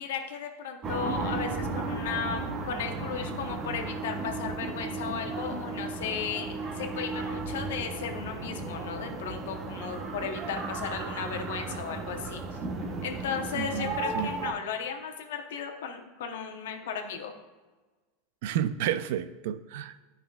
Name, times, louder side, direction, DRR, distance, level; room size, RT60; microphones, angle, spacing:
voice 1, 0.0-12.4 13.0-17.3, left 6 dB, 80° left, 4 dB, 0.9 m, -35 dB
sound 1, 0.8-14.5, right 3 dB, 30° right, 0.8 m, -35 dB
voice 2, 13.5-14.3 18.4-19.9, right 10 dB, 70° right, 13 dB, 0.4 m, -31 dB
10.0 x 5.6 x 2.3 m, 1.3 s
supercardioid pair, 115°, 0 cm